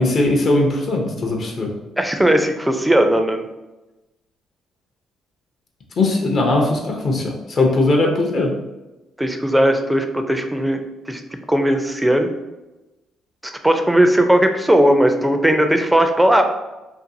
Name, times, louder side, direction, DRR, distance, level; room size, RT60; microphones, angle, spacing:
voice 1, 0.0-1.7 6.0-8.5, left 2 dB, 55° left, 0 dB, 0.6 m, -19 dB
voice 2, 2.0-3.5 9.2-11.2 11.5-12.3 13.4-16.4, right 1 dB, 10° right, 6 dB, 0.4 m, -17 dB
2.6 x 2.5 x 2.6 m, 1.0 s
supercardioid pair, 60°, 0 cm